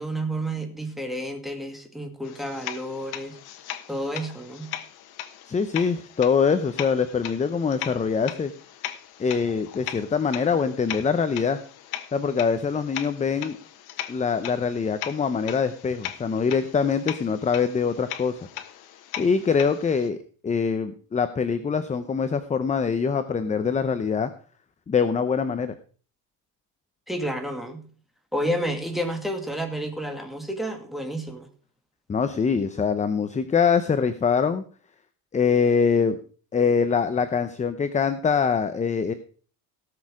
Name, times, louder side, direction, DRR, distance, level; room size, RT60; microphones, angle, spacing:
voice 1, 0.0-3.4 3.9-4.7 27.1-27.8 28.3-31.5, right 1 dB, ahead, 2.0 m, -30 dB
sound 1, 2.2-20.1, left 12 dB, 75° left, 1.3 m, -39 dB
voice 2, 5.5-8.5 9.2-11.6 12.1-13.6 14.1-18.4 19.2-20.2 20.4-24.3 24.9-25.7 32.1-34.6 35.3-36.2 36.5-39.1, left 6 dB, 20° left, 0.7 m, -24 dB
17.0 x 6.5 x 4.8 m
cardioid pair, 140°, 37 cm